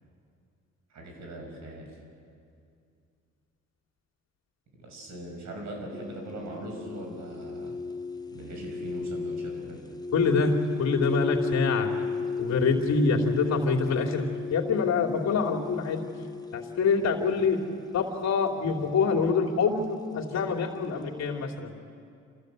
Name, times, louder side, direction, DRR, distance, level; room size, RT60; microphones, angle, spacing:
voice 1, 0.9-1.9 4.8-7.8 8.3-9.8, right 1 dB, 65° right, 1 dB, 6.3 m, -40 dB
sound 1, 5.9-21.5, left 4 dB, 15° left, 1.1 m, -36 dB
voice 2, 10.1-11.9 12.4-14.3 14.5-16.0 16.5-17.6 17.9-21.7, left 4 dB, 60° left, -1 dB, 2.9 m, -25 dB
28.0 x 14.5 x 8.1 m, 2.4 s
cardioid pair, 90°, 30 cm